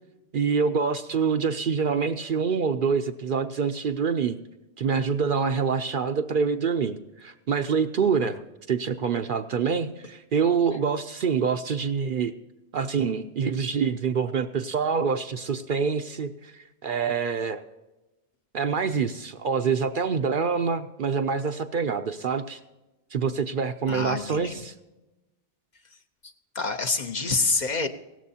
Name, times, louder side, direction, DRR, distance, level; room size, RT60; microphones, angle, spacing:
voice 1, 0.3-4.4 4.8-8.4 8.7-12.3 12.7-17.6 18.5-22.6 23.1-24.7, right 6 dB, 60° right, 8 dB, 0.7 m, -26 dB
voice 2, 23.9-24.6 26.2-27.9, left 4 dB, 45° left, 6 dB, 0.8 m, -27 dB
17.0 x 13.5 x 2.8 m, 1.0 s
omnidirectional pair, 1.1 m